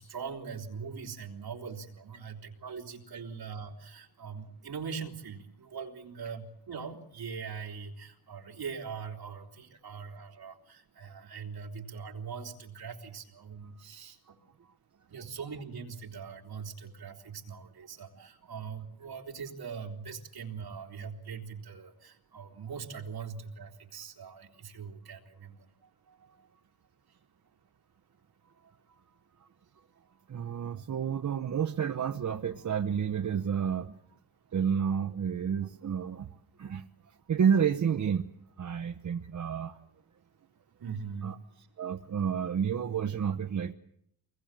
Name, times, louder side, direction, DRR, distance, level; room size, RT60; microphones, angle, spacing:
voice 1, 0.0-14.4 15.1-25.7 27.1-27.2 40.8-41.7, right 6 dB, 65° right, 1 dB, 3.5 m, -42 dB
voice 2, 30.3-33.9 34.5-36.3 36.6-38.3 38.6-39.8 41.2-41.3 41.8-43.7, right 7 dB, 45° right, 7 dB, 0.9 m, -30 dB
26.0 x 21.0 x 7.6 m, 0.72 s
wide cardioid pair, 160°, 39 cm